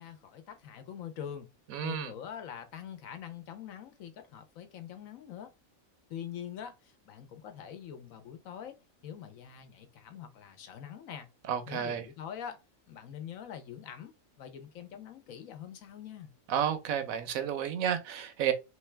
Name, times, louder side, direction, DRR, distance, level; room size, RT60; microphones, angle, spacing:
voice 1, 0.0-1.5 1.8-5.5 6.1-11.3 11.7-12.6 12.9-16.3, left 9 dB, 75° left, 1.1 m, -44 dB
voice 2, 1.7-2.1 11.5-12.1 16.5-18.5, right 9 dB, 80° right, 1.1 m, -31 dB
3.4 x 3.1 x 3.3 m
omnidirectional pair, 1.4 m